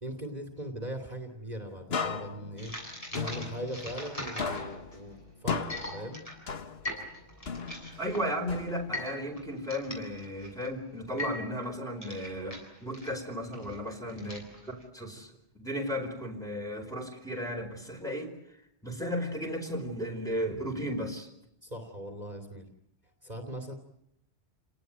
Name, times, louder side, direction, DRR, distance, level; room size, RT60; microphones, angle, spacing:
voice 1, 0.0-2.7 3.1-6.2 21.6-22.7 23.2-23.7, equal, 40° right, 6 dB, 2.8 m, -40 dB
sound 1, 1.9-4.1 4.4-7.1 7.5-9.1, left 5 dB, 65° left, 1.5 m, -37 dB
sound 2, 2.6-14.8, left 1 dB, 30° left, 8.2 m, -42 dB
voice 2, 8.0-18.3 18.8-21.3, equal, 5° left, 2 dB, 4.8 m, -35 dB
29.5 x 19.0 x 9.2 m, 0.79 s
omnidirectional pair, 1.1 m